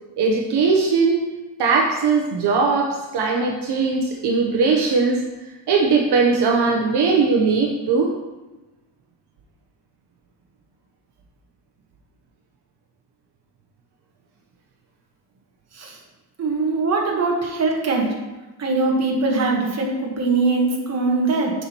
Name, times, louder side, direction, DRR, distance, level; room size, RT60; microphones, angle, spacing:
voice 1, 0.2-1.3 1.6-5.2 5.7-8.1, right 4 dB, 65° right, -1 dB, 0.8 m, -19 dB
voice 2, 16.4-18.1 18.6-21.5, right 3 dB, 35° right, -1 dB, 1.2 m, -21 dB
7.2 x 5.7 x 2.9 m, 1.1 s
cardioid pair, 140°, 43 cm